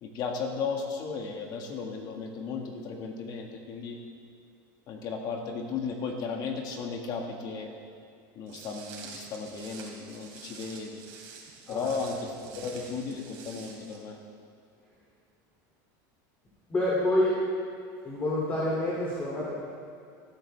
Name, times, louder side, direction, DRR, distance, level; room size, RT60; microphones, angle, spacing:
voice 1, 0.0-4.0 4.9-7.7 8.3-11.0 11.7-14.2, left 5 dB, 40° left, 2 dB, 1.7 m, -35 dB
Walk footsteps, 8.5-14.0, right 5 dB, 55° right, 3.0 m, -47 dB
voice 2, 11.7-12.2 12.4-12.5 16.7-17.4 18.0-19.5, left 1 dB, 15° left, -6 dB, 2.5 m, -28 dB
16.5 x 13.0 x 3.4 m, 2.3 s
supercardioid pair, 155°, 10 cm